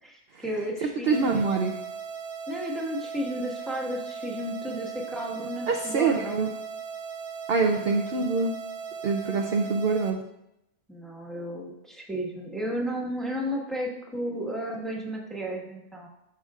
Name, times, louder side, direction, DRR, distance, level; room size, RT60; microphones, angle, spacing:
voice 1, 0.0-1.7 2.5-6.4 7.7-7.9 10.9-16.1, equal, ahead, -1 dB, 1.2 m, -33 dB
voice 2, 0.8-1.7 5.7-6.5 7.5-8.5 9.0-10.2, right 4 dB, 55° right, 3 dB, 0.7 m, -25 dB
sound 1, 1.1-10.1, right 6 dB, 85° right, 1.4 m, -38 dB
13.5 x 5.7 x 2.4 m, 0.84 s
omnidirectional pair, 1.6 m